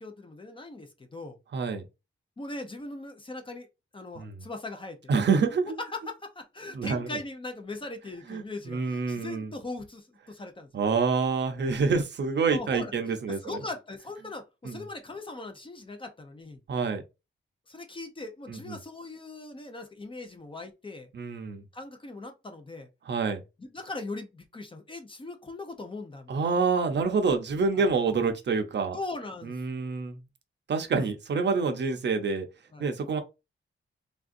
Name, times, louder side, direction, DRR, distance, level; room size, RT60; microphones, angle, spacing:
voice 1, 0.0-1.4 2.4-3.7 3.9-5.0 5.8-11.1 11.7-11.9 12.5-16.6 17.7-21.1 21.7-22.9 23.6-26.3 27.7-27.9 28.9-29.9 32.7-32.9, left 2 dB, 25° left, 0.6 m, -40 dB
voice 2, 1.5-1.8 4.2-4.3 5.1-5.8 6.7-7.2 8.3-9.5 10.7-13.4 14.6-14.8 16.7-17.0 18.5-18.8 21.1-21.6 23.1-23.4 26.3-29.0 29.4-30.2 30.7-32.5 32.8-33.2, right 4 dB, 55° right, 0.6 m, -27 dB
3.4 x 2.5 x 2.5 m
wide cardioid pair, 165°, 21 cm